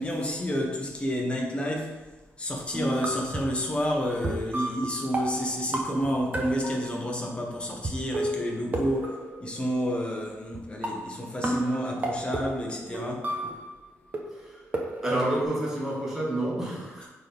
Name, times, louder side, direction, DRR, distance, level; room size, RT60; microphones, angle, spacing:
voice 1, 0.0-2.0 2.4-13.6, equal, 20° left, 0 dB, 1.3 m, -30 dB
sound 1, 2.7-3.6 4.2-7.1 7.8-9.8 10.5-10.6 10.8-13.7 14.1-15.4, right 1 dB, 30° right, 1.0 m, -32 dB
voice 2, 14.3-14.7 15.0-17.1, right 1 dB, 10° right, -6 dB, 1.6 m, -29 dB
9.1 x 4.1 x 3.6 m, 1.1 s
wide cardioid pair, 140°, 5 cm